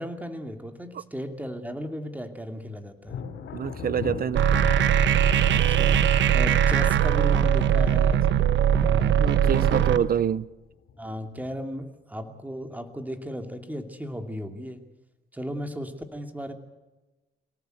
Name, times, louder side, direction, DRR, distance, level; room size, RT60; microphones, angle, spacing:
voice 1, 0.0-3.2 5.5-6.0 6.3-8.3 8.8-10.1 11.0-14.8 15.3-16.5, equal, 10° right, 2.7 m, -35 dB
Thunder, 3.0-9.5 9.8-10.4 10.9-11.7, left 6 dB, 70° left, 3.3 m, -40 dB
voice 2, 3.5-4.5 9.2-10.4, right 8 dB, 50° right, 0.6 m, -26 dB
sound 1, 4.3-10.0, right 9 dB, 65° right, 1.1 m, -20 dB
24.0 x 18.0 x 8.0 m
cardioid pair, 90°, 20 cm